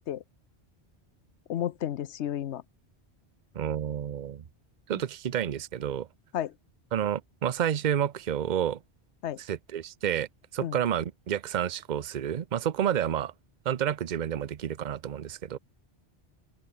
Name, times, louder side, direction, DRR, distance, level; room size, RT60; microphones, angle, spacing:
voice 1, 1.5-2.6 6.3-6.5 9.2-9.4 10.6-10.8, left 11 dB, 85° left, 1.0 m, -32 dB
voice 2, 3.5-4.4 4.9-6.1 6.9-8.8 9.5-10.3 10.5-13.3 13.6-15.6, right 9 dB, 50° right, 0.8 m, -30 dB
open air
omnidirectional pair, 1.1 m